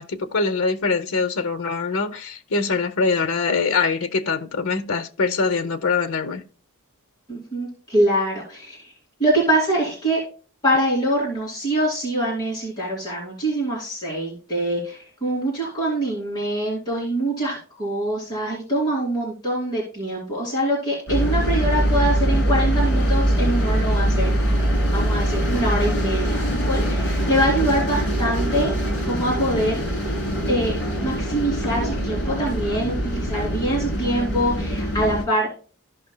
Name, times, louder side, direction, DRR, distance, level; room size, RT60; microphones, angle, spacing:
voice 1, 0.0-6.4, left 4 dB, 80° left, 0.7 m, -23 dB
voice 2, 7.3-8.9 9.2-10.2 10.6-24.3 24.9-28.7 29.1-29.8 30.5-30.8 31.0-35.5, right 1 dB, 20° left, 2.5 m, -24 dB
sound 1, 21.1-35.2, equal, 60° left, 3.0 m, -23 dB
14.0 x 5.5 x 2.2 m
head